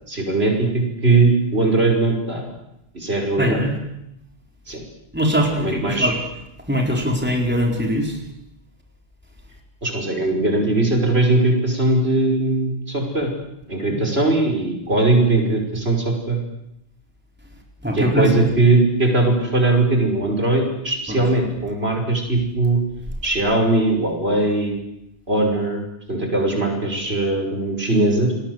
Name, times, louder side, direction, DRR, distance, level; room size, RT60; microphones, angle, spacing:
voice 1, 0.1-2.5 2.9-3.6 4.7-4.8 5.6-6.1 9.8-13.3 13.7-16.4 17.9-22.8 23.2-24.8 25.3-25.8 26.1-28.3, right 2 dB, 65° right, 2 dB, 5.9 m, -20 dB
voice 2, 3.4-3.7 5.1-6.1 6.7-8.2 13.9-14.0 17.8-18.4 21.1-21.2, equal, 10° right, 1 dB, 4.3 m, -21 dB
29.5 x 21.5 x 8.0 m, 0.84 s
omnidirectional pair, 1.1 m